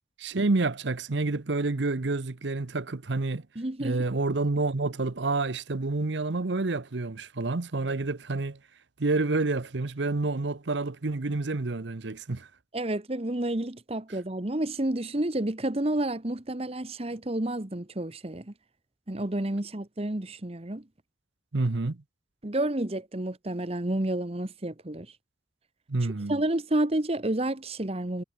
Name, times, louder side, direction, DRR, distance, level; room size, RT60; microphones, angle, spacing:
voice 1, 0.2-3.5 3.8-8.6 9.0-12.5 21.5-22.0 25.9-26.4, right 3 dB, 70° right, 0.9 m, -28 dB
voice 2, 3.5-4.0 12.7-18.5 19.1-20.8 22.4-25.1 26.3-28.2, right 1 dB, 30° right, 1.2 m, -30 dB
head